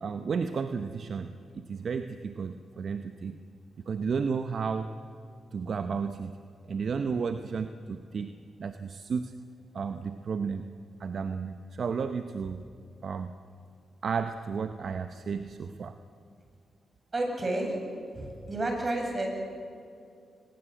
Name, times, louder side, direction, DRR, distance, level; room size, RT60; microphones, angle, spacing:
voice 1, 0.0-3.4 3.8-4.9 5.5-6.4 6.7-8.3 8.6-9.3 9.7-10.7 11.0-12.6 13.0-13.3 14.0-15.9, right 5 dB, 65° right, 9 dB, 0.9 m, -33 dB
voice 2, 17.1-17.8 18.1-19.3, right 2 dB, 40° right, 2 dB, 7.5 m, -30 dB
23.5 x 21.0 x 7.8 m, 2.5 s
supercardioid pair, 50°, 0 cm